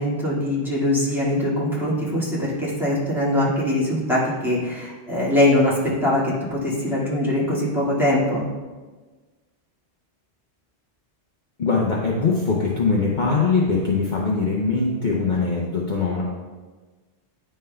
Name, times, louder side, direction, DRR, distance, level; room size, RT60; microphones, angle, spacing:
voice 1, 0.0-8.4, left 1 dB, ahead, -9 dB, 1.9 m, -22 dB
voice 2, 11.6-16.2, left 4 dB, 50° left, -3 dB, 0.8 m, -22 dB
9.6 x 5.5 x 2.2 m, 1.3 s
omnidirectional pair, 1.1 m